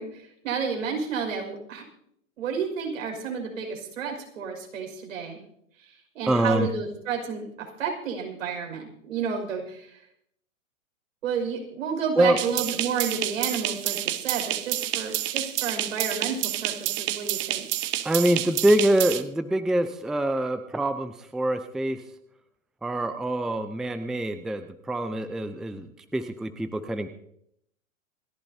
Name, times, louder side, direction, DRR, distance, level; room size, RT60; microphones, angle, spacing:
voice 1, 0.0-1.8 2.4-5.4 5.8-10.0 11.2-17.7, right 6 dB, 75° right, 2 dB, 5.8 m, -31 dB
voice 2, 6.3-6.7 12.2-12.4 18.0-22.0 22.8-27.1, right 1 dB, ahead, 9 dB, 0.5 m, -25 dB
sound 1, 12.4-19.2, right 14 dB, 30° right, 0.9 m, -29 dB
28.0 x 11.5 x 2.8 m, 0.72 s
hypercardioid pair, 125°, 39 cm